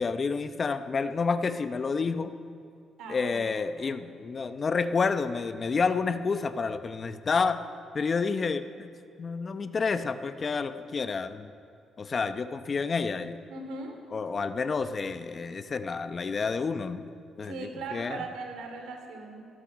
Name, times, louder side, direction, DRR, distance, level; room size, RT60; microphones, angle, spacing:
voice 1, 0.0-2.3 3.1-7.6 7.9-8.9 9.2-11.5 12.0-13.4 14.1-17.0 17.4-18.2, left 4 dB, 40° left, 11 dB, 0.8 m, -29 dB
voice 2, 3.0-3.6 13.5-13.9 17.4-19.5, right 3 dB, 85° right, 4 dB, 2.9 m, -39 dB
17.5 x 13.0 x 6.3 m, 2.4 s
cardioid pair, 90°, 0 cm